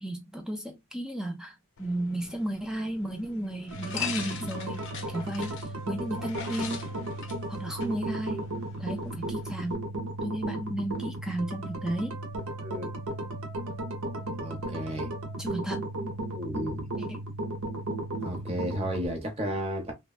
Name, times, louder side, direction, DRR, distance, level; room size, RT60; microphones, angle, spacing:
voice 1, 0.0-6.9 7.5-8.5 8.8-9.8 10.2-12.2 15.4-15.9 17.0-17.2, right 1 dB, 5° right, 0.3 m, -34 dB
sound 1, 1.8-9.7, left 7 dB, 55° left, 0.6 m, -42 dB
sound 2, 3.7-19.1, right 1 dB, 70° right, 0.6 m, -35 dB
voice 2, 12.6-12.9 14.3-15.1 16.3-16.9 18.2-19.9, equal, 25° right, 0.8 m, -33 dB
3.3 x 2.1 x 2.3 m
head